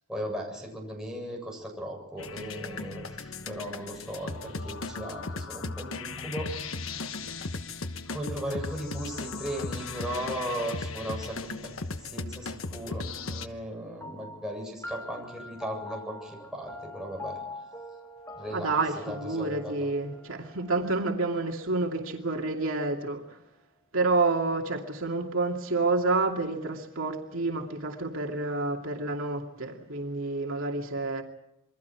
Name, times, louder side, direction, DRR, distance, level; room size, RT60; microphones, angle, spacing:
voice 1, 0.1-7.5 8.1-11.7 12.0-13.0 13.3-17.4 18.4-19.9, equal, 5° right, 7.6 m, -37 dB
sound 1, 2.2-13.5, left 3 dB, 75° left, 1.2 m, -37 dB
sound 2, 14.0-22.8, left 2 dB, 15° left, 1.8 m, -45 dB
voice 2, 18.5-23.4 23.9-31.2, right 3 dB, 75° right, 2.6 m, -29 dB
27.5 x 23.0 x 4.8 m
head